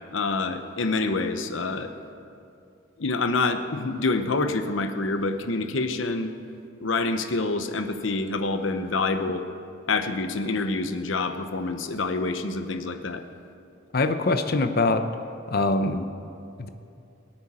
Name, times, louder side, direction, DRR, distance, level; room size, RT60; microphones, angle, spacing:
voice 1, 0.1-1.9 3.0-6.3 6.8-9.4 9.9-13.2, left 3 dB, 90° left, 8 dB, 0.9 m, -27 dB
voice 2, 13.9-15.1 15.5-16.0 16.6-16.7, left 2 dB, 55° left, 9 dB, 0.8 m, -23 dB
23.0 x 8.9 x 4.3 m, 2.6 s
head